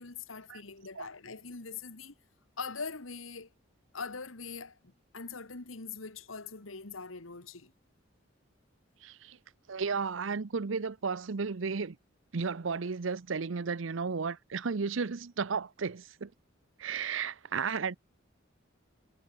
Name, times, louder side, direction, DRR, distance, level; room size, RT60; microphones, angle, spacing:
voice 1, 0.0-2.1 2.6-3.5 3.9-7.7, left 4 dB, 85° left, 1.9 m, -42 dB
voice 2, 9.0-9.4 9.7-12.0 12.3-16.3 16.8-18.0, right 5 dB, 75° right, 0.7 m, -33 dB
head